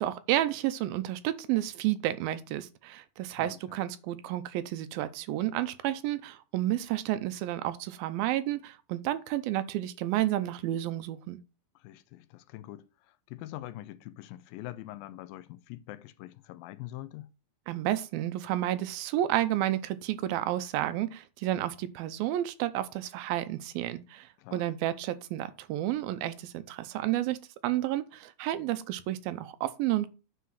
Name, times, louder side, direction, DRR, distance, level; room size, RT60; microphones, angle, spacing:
voice 1, 0.0-11.4 17.7-30.1, right 14 dB, 85° right, 2.5 m, -31 dB
voice 2, 3.3-3.8 11.8-17.3 24.4-24.7, left 15 dB, 80° left, 2.2 m, -44 dB
9.3 x 4.2 x 6.4 m
omnidirectional pair, 4.2 m